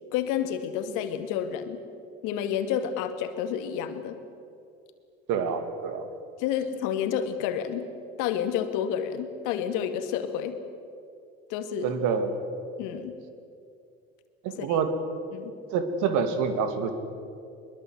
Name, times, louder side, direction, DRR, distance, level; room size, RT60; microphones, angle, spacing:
voice 1, 0.1-1.8 2.2-4.2 6.4-7.9 8.2-10.6 11.5-11.9 12.8-13.2 14.6-14.8 15.3-15.5, left 9 dB, 70° left, 8 dB, 2.2 m, -30 dB
voice 2, 5.3-6.1 11.8-12.4 14.4-14.9 15.7-16.9, right 6 dB, 65° right, 8 dB, 2.5 m, -27 dB
23.0 x 22.0 x 8.0 m, 2.5 s
hypercardioid pair, 65°, 32 cm